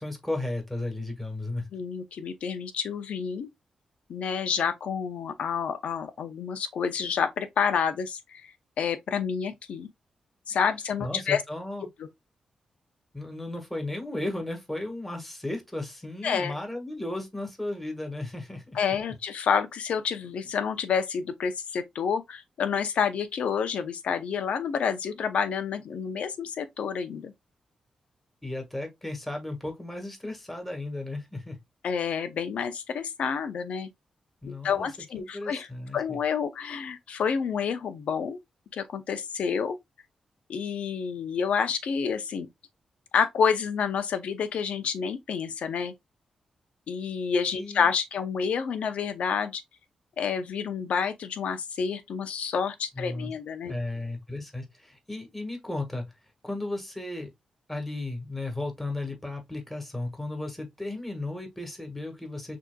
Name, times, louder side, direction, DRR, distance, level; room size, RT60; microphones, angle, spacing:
voice 1, 0.0-1.7 11.0-11.9 13.1-18.8 28.4-31.6 34.4-34.9 35.1-36.2 47.6-47.9 52.9-53.3 53.7-56.1 56.4-57.3 57.7-62.6, left 2 dB, 10° left, 1.8 m, -35 dB
voice 2, 1.7-3.5 4.1-8.5 8.8-9.9 10.5-11.4 16.2-16.5 18.7-27.3 31.8-33.9 34.4-35.7 35.9-38.4 38.7-39.8 40.5-42.5 43.1-45.9 46.9-49.6 50.2-53.7, left 6 dB, 80° left, 0.7 m, -29 dB
6.0 x 2.9 x 2.3 m
cardioid pair, 75°, 2 cm